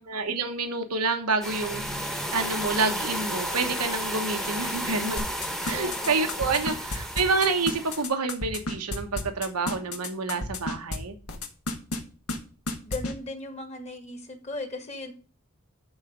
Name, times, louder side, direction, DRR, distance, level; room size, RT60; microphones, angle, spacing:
voice 1, 0.0-5.2 5.6-11.1, right 4 dB, 90° right, 6 dB, 1.1 m, -28 dB
sound 1, 1.4-8.0, equal, ahead, 1.1 m, -32 dB
sound 2, 5.2-11.0 11.3-12.0 12.3-12.4 12.7-13.1, left 2 dB, 70° left, 1.7 m, -31 dB
voice 2, 5.7-6.6 12.8-15.1, left 2 dB, 30° left, 5 dB, 1.9 m, -38 dB
12.0 x 4.1 x 5.1 m, 0.38 s
head